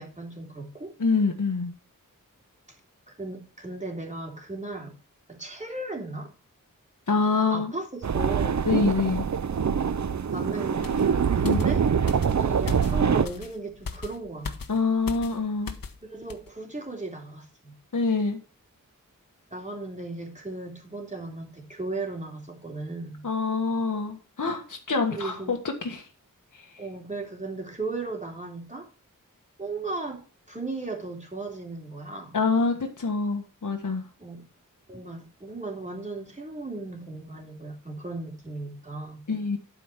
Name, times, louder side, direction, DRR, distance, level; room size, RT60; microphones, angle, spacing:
voice 1, 0.0-1.0 3.1-4.9 5.3-6.3 7.5-7.9 8.1-8.7 10.3-11.9 12.3-14.8 16.1-17.7 19.5-23.3 25.1-25.6 26.8-28.9 29.6-32.4 34.2-34.4 34.9-39.3, right 2 dB, 20° right, 3.4 m, -36 dB
voice 2, 1.0-1.7 7.1-7.7 8.7-9.3 11.4-11.6 14.7-15.8 17.9-18.4 23.2-26.1 26.5-26.8 32.3-34.1 39.3-39.6, left 4 dB, 65° left, 1.5 m, -26 dB
sound 1, 8.0-13.3, right 7 dB, 55° right, 0.6 m, -24 dB
sound 2, 10.8-16.0 16.3-16.5, left 4 dB, 85° left, 1.1 m, -39 dB
11.5 x 5.2 x 5.9 m
wide cardioid pair, 75°, 33 cm